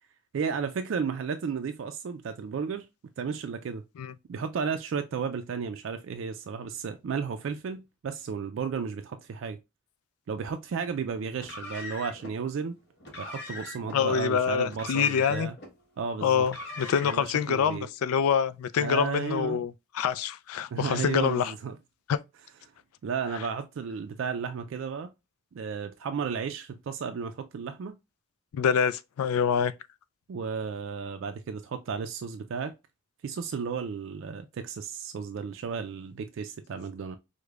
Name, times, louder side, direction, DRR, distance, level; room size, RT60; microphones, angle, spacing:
voice 1, 0.3-2.9 3.2-3.8 4.3-9.6 10.3-12.8 13.2-15.5 16.0-16.5 17.0-17.9 18.8-19.6 20.7-21.8 23.0-25.1 25.5-28.0 30.3-32.7 33.2-37.2, right 6 dB, 60° right, 0.3 m, -33 dB
Car, 11.3-12.3 13.0-14.0 14.7-15.7 16.4-17.3, left 2 dB, 50° left, 1.2 m, -41 dB
voice 2, 13.9-15.5 16.2-21.5 22.1-22.2 28.5-29.7, left 7 dB, 85° left, 0.3 m, -26 dB
4.8 x 2.1 x 2.3 m
head